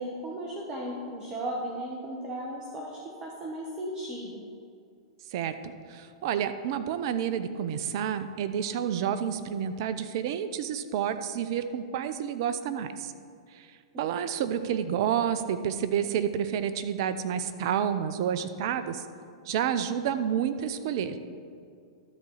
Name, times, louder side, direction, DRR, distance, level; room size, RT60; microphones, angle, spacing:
voice 1, 0.0-4.4, right 1 dB, 25° right, -2 dB, 1.3 m, -36 dB
voice 2, 5.3-13.1 13.5-13.7 14.0-19.1 19.5-21.2, right 8 dB, 55° right, 11 dB, 0.6 m, -29 dB
12.5 x 4.2 x 6.3 m, 2.3 s
hypercardioid pair, 110°, 3 cm